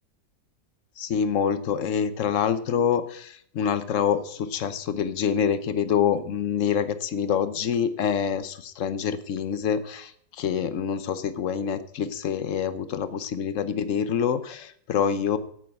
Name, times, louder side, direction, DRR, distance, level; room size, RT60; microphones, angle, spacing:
voice 1, 1.0-15.4, left 8 dB, 55° left, 12 dB, 1.0 m, -26 dB
8.9 x 8.7 x 7.9 m, 0.64 s
omnidirectional pair, 2.0 m